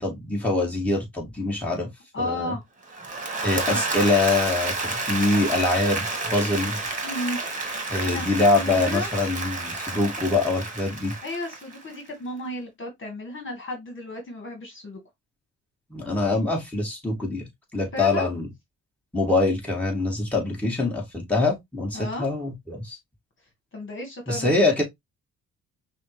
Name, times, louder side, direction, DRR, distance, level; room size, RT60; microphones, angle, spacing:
voice 1, 0.0-1.9 2.2-2.5 3.4-6.9 7.9-11.1 15.9-17.4 17.7-18.5 19.1-23.0 24.3-24.8, left 2 dB, 5° left, 2.5 m, -24 dB
voice 2, 2.1-2.6 3.7-3.8 7.0-7.4 8.0-9.1 11.2-15.0 17.9-18.3 21.9-22.3 23.7-24.6, left 1 dB, 40° left, 1.8 m, -33 dB
Applause / Crowd, 2.9-12.0, right 3 dB, 25° right, 1.8 m, -30 dB
5.6 x 2.6 x 3.2 m
cardioid pair, 90°, 30 cm